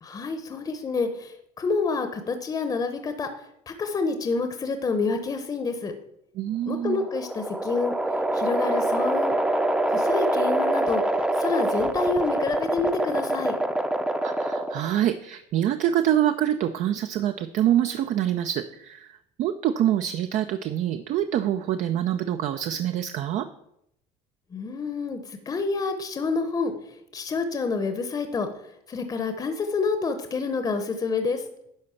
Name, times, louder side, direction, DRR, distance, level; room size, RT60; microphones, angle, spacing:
voice 1, 0.0-5.9 6.7-7.9 8.3-9.4 9.9-13.6 24.5-26.7 27.1-28.5 28.9-31.4, left 4 dB, 25° left, 8 dB, 0.8 m, -28 dB
voice 2, 6.4-7.1 14.2-23.5, right 11 dB, 50° right, 9 dB, 0.6 m, -25 dB
sound 1, 6.7-15.0, right 1 dB, 5° right, 0.6 m, -25 dB
10.5 x 4.0 x 7.0 m, 0.77 s
cardioid pair, 125°, 16 cm